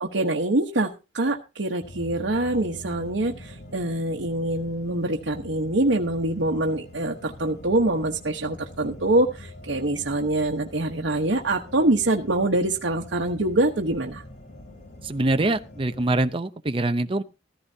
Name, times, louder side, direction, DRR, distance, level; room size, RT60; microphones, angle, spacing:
voice 1, 0.0-14.2, right 2 dB, 80° right, 1.1 m, -25 dB
sound 1, 1.8-16.3, left 1 dB, 45° left, 2.8 m, -44 dB
voice 2, 15.0-17.2, right 2 dB, 30° right, 0.7 m, -24 dB
14.5 x 14.0 x 2.8 m
head